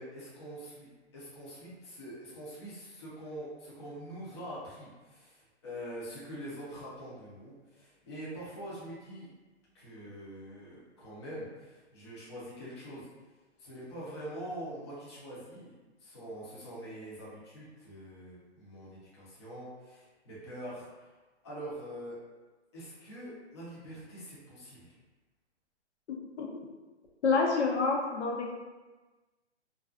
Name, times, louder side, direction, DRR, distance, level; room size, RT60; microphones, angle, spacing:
voice 1, 0.0-9.3 9.7-13.1 13.6-15.7 16.0-21.1 21.4-22.2 22.7-24.9, equal, 25° left, -9 dB, 0.5 m, -44 dB
voice 2, 26.1-26.5 27.2-28.5, left 4 dB, 70° left, -1 dB, 0.6 m, -28 dB
2.4 x 2.3 x 2.3 m, 1.2 s
hypercardioid pair, 160°, 35 cm